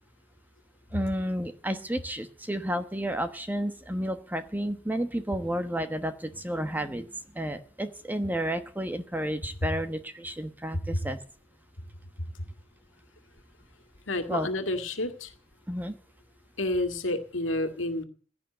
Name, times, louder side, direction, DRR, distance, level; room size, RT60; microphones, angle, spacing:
voice 1, 0.9-7.1 7.3-11.2 14.3-14.5 15.7-15.9, equal, 10° right, 9 dB, 1.1 m, -31 dB
voice 2, 14.1-15.3 16.6-18.1, left 2 dB, 85° left, 7 dB, 2.0 m, -29 dB
16.0 x 9.6 x 7.7 m, 0.43 s
head